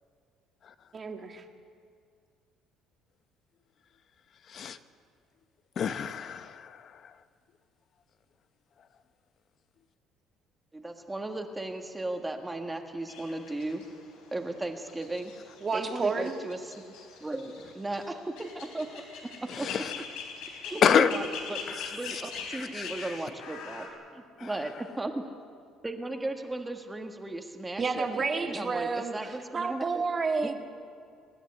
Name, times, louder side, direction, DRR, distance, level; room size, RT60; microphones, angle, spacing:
voice 1, 0.9-1.4 15.6-16.3 27.8-30.5, right 4 dB, 30° right, 4 dB, 1.9 m, -30 dB
voice 2, 5.8-6.9 19.5-19.9 20.8-21.1 21.7-22.2 22.5-22.9 24.4-24.5, left 8 dB, 45° left, 11 dB, 0.9 m, -27 dB
voice 3, 10.7-13.9 14.3-15.3 15.7-16.9 17.2-19.7 20.6-21.6 21.9-23.9 24.1-25.2 25.8-30.0 30.4-30.5, right 2 dB, 10° right, 4 dB, 1.6 m, -36 dB
sound 1, 13.1-23.9, left 5 dB, 90° left, 4.2 m, -43 dB
24.5 x 10.5 x 9.9 m, 2.2 s
cardioid pair, 125°, 0 cm